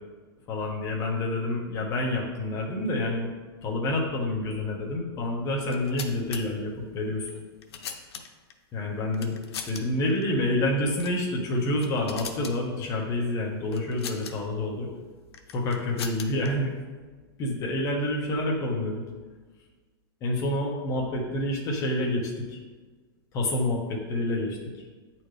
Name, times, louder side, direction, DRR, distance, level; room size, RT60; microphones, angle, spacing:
voice 1, 0.5-3.3 3.6-7.3 8.7-9.3 9.6-14.9 15.5-16.8 17.4-19.0 20.2-22.6 23.3-24.6, left 1 dB, 25° left, -1 dB, 1.2 m, -28 dB
sound 1, 5.6-6.4 7.3-8.5 9.1-9.8 10.1-10.2 10.9-11.2 11.6-12.6 13.7-14.3 15.3-16.5, left 7 dB, 80° left, 0.8 m, -39 dB
8.7 x 4.4 x 3.3 m, 1.4 s
supercardioid pair, 160°, 13 cm